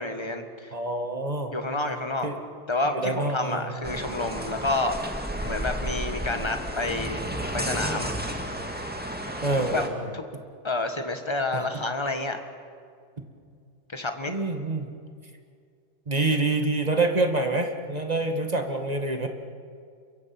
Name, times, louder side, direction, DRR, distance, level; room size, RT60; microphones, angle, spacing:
voice 1, 0.0-0.7 1.5-2.3 2.7-5.0 5.4-7.2 7.5-8.1 9.7-9.8 10.1-10.2 10.6-12.4 13.9-14.3, left 2 dB, 15° left, 6 dB, 1.4 m, -29 dB
voice 2, 0.7-1.5 2.2-2.4 2.9-4.0 9.4-10.4 11.5-11.6 14.3-14.9 16.1-19.3, right 2 dB, 20° right, 5 dB, 1.6 m, -27 dB
sound 1, 3.8-9.9, equal, 5° right, 1.7 m, -32 dB
27.5 x 23.5 x 6.0 m, 2.3 s
omnidirectional pair, 2.3 m